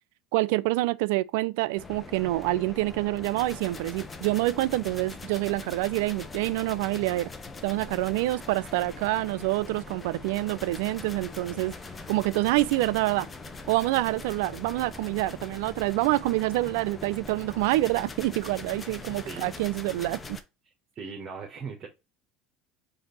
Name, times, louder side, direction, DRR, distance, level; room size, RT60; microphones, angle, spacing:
voice 1, 0.3-7.3 7.6-11.7 12.1-13.3 13.7-20.4, right 18 dB, 80° right, 0.3 m, -27 dB
sound 1, 1.8-20.4, left 3 dB, 20° left, 0.7 m, -42 dB
voice 2, 20.9-21.9, right 5 dB, 40° right, 1.2 m, -38 dB
5.0 x 2.7 x 3.9 m
supercardioid pair, 100°, 0 cm